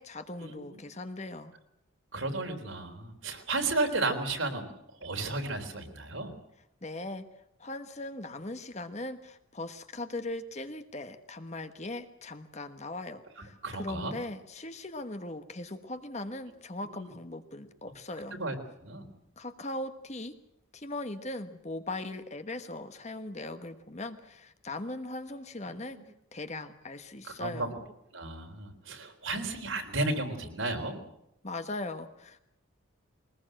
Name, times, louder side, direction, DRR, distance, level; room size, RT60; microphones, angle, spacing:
voice 1, 0.0-1.5 6.8-7.3 7.6-18.4 19.4-20.3 20.7-26.0 26.3-27.8 31.4-32.4, left 2 dB, 35° left, 9 dB, 1.3 m, -39 dB
voice 2, 2.1-4.7 5.0-6.3 13.6-14.1 18.3-18.6 18.8-19.1 25.7-26.0 27.4-27.7 28.1-31.0, right 2 dB, 70° right, 4 dB, 3.7 m, -33 dB
22.0 x 20.0 x 7.8 m, 0.81 s
head